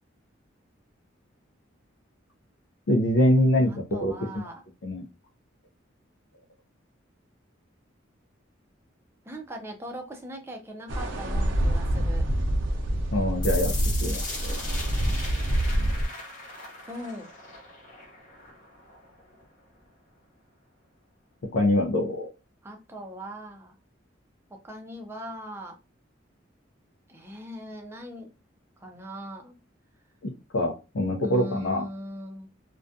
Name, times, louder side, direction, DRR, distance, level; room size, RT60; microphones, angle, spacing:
voice 1, 2.9-4.1 4.8-5.0 13.1-13.7 14.0-14.6 21.5-22.3 30.2-31.9, left 1 dB, 75° left, -1 dB, 0.5 m, -24 dB
voice 2, 3.7-4.6 9.2-12.3 16.9-17.3 22.6-23.7 24.5-25.8 27.1-28.3 28.8-29.6 31.2-32.5, equal, 15° right, 2 dB, 0.5 m, -39 dB
sound 1, 10.9-16.0, right 1 dB, 75° right, 0.6 m, -26 dB
sound 2, 13.4-19.4, left 3 dB, 40° left, 0.8 m, -39 dB
2.4 x 2.2 x 2.6 m, 0.30 s
head